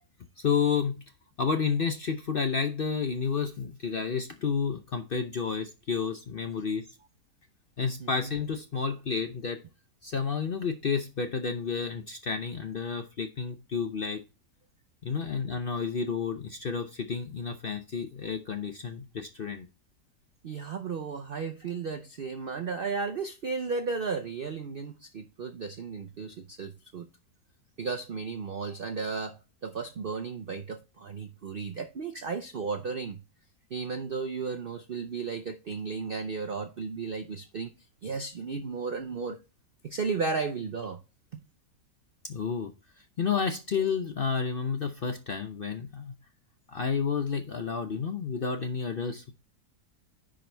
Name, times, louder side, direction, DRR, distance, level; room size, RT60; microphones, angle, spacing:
voice 1, 0.4-1.0 1.4-6.9 7.8-9.6 10.0-14.2 15.0-19.7 42.2-42.7 43.2-46.1 46.7-49.3, left 6 dB, 50° left, 0.6 m, -30 dB
voice 2, 20.4-27.0 27.8-33.2 33.7-37.7 38.0-39.4 39.8-41.0, right 4 dB, 65° right, 0.5 m, -34 dB
10.5 x 5.1 x 3.3 m
omnidirectional pair, 1.7 m